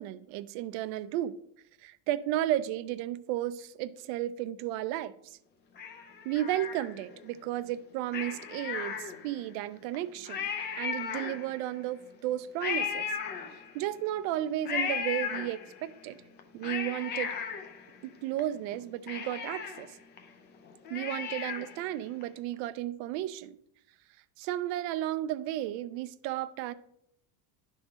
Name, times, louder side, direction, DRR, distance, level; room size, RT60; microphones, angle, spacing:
voice 1, 0.0-1.3 1.8-5.4 6.2-10.5 10.8-13.1 13.7-16.2 16.5-17.3 18.0-20.0 20.9-23.6 24.4-26.7, right 13 dB, 55° right, 0.5 m, -33 dB
Cat, 5.8-7.2 8.1-9.5 9.9-10.0 10.2-11.8 12.6-14.0 14.6-15.9 16.4-18.4 18.7-18.8 19.1-21.9 22.2-22.3, left 6 dB, 25° left, 0.4 m, -36 dB
10.5 x 3.8 x 5.1 m
cardioid pair, 175°, 46 cm